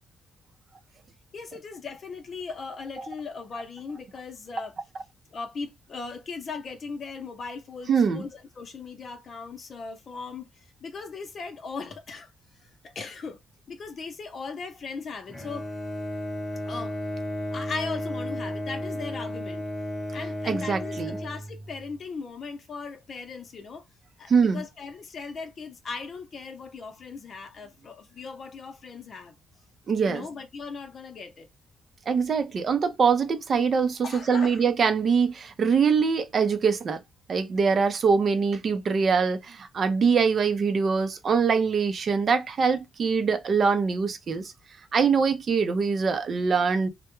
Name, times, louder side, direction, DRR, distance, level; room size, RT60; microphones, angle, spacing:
voice 1, 1.3-4.8 5.3-12.3 12.6-13.4 13.7-15.7 16.7-17.0 17.5-19.7 20.1-23.9 24.2-29.4 30.0-31.5 34.0-34.6, left 4 dB, 50° left, 0.6 m, -38 dB
voice 2, 7.9-8.2 20.5-21.2 24.3-24.6 29.9-30.2 32.1-37.0 37.3-44.5 44.9-46.9, right 5 dB, 50° right, 0.5 m, -23 dB
Bowed string instrument, 15.3-22.0, left 1 dB, 10° left, 0.9 m, -33 dB
2.2 x 2.1 x 2.9 m
cardioid pair, 90°, 0 cm